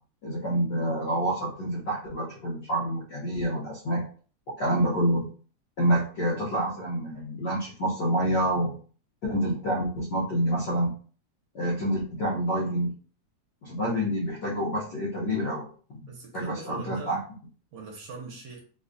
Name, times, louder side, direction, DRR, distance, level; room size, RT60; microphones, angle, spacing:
voice 1, 0.2-4.0 4.6-5.3 5.8-8.8 9.2-10.9 11.5-12.9 13.6-15.7 16.3-17.2, right 1 dB, 65° left, -6 dB, 1.0 m, -27 dB
voice 2, 16.1-17.2 17.7-18.6, right 4 dB, 70° right, 0 dB, 1.8 m, -41 dB
4.6 x 2.3 x 2.6 m, 0.42 s
omnidirectional pair, 3.4 m